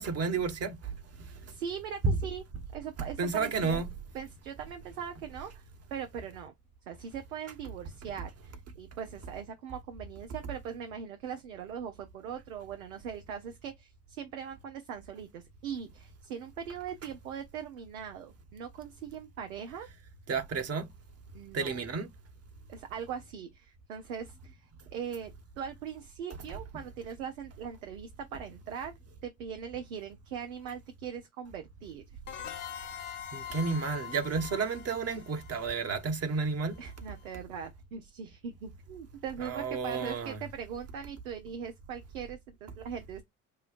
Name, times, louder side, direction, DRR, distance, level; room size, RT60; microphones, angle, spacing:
voice 1, 0.0-1.5 2.0-2.2 3.2-3.9 20.3-20.9 21.5-22.1 33.3-36.8 39.4-40.4, right 4 dB, 35° right, 1.2 m, -31 dB
voice 2, 1.5-2.4 2.7-3.8 4.1-5.6 5.9-6.5 6.9-19.9 21.3-21.8 22.7-28.9 29.2-32.0 36.8-43.2, right 7 dB, 80° right, 0.7 m, -41 dB
sound 1, 32.3-36.8, left 9 dB, 45° left, 0.9 m, -43 dB
5.5 x 2.2 x 2.5 m
hypercardioid pair, 60°, 41 cm